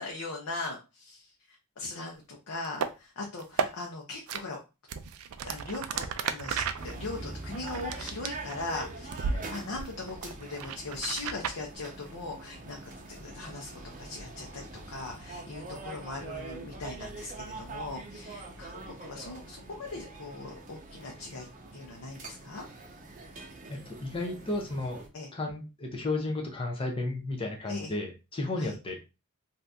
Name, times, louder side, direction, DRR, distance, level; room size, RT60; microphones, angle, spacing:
voice 1, 0.0-4.6 5.4-21.5 21.7-22.6 25.1-25.3 27.7-27.9 28.6-28.7, left 2 dB, 80° left, -1 dB, 0.7 m, -40 dB
sound 1, 2.6-2.9 3.4-3.7 4.3-4.4 4.9-8.7 9.1-9.4 9.7-11.6, right 6 dB, 85° right, 0.4 m, -33 dB
sound 2, 6.8-25.1, right 2 dB, 40° right, 0.6 m, -44 dB
voice 2, 23.7-25.0 25.3-29.1, left 2 dB, 25° left, 1 dB, 0.6 m, -33 dB
2.7 x 2.5 x 3.4 m, 0.28 s
head